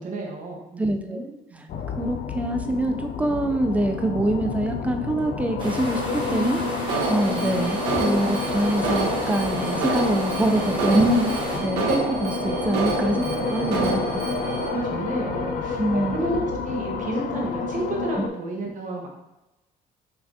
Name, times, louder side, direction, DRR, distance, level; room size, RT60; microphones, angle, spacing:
voice 1, 0.0-1.6 10.9-11.3 11.8-12.0 13.0-13.4 13.8-13.9 14.6-19.1, right 2 dB, 50° right, 0 dB, 1.2 m, -31 dB
voice 2, 0.8-1.2 1.6-1.7 2.0-11.2 11.4-13.2 13.5-14.2 15.8-16.2, right 1 dB, 10° right, 5 dB, 0.4 m, -25 dB
sound 1, 1.7-18.3, left 5 dB, 55° left, 0.5 m, -30 dB
sound 2, 5.6-11.6, equal, 30° right, 1.3 m, -33 dB
Alarm, 6.9-14.7, right 3 dB, 85° right, 1.1 m, -28 dB
5.8 x 3.3 x 2.7 m, 0.97 s
cardioid pair, 110°, 17 cm